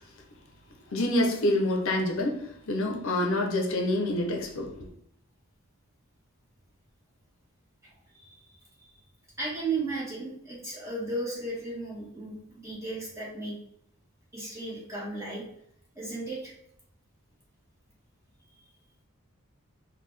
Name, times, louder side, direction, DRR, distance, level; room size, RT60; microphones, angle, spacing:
voice 1, 0.9-4.9, left 1 dB, 65° left, 0.6 m, -27 dB
voice 2, 7.8-8.5 8.8-8.9 9.4-13.6 14.3-15.4 15.9-16.5, right 2 dB, 15° right, 1.3 m, -35 dB
3.8 x 2.2 x 3.2 m
head